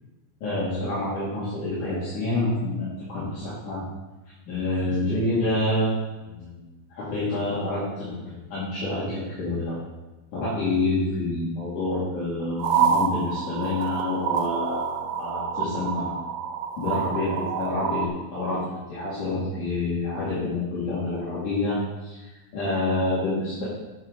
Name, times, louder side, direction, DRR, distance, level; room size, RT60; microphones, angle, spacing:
voice 1, 0.4-3.8 4.5-5.9 6.4-6.7 7.0-9.8 10.3-16.1 16.8-22.2 22.5-23.6, left 2 dB, 60° left, -10 dB, 3.7 m, -27 dB
sound 1, 12.6-18.1, right 7 dB, 80° right, 1.9 m, -27 dB
9.0 x 8.0 x 3.9 m, 1.1 s
omnidirectional pair, 4.2 m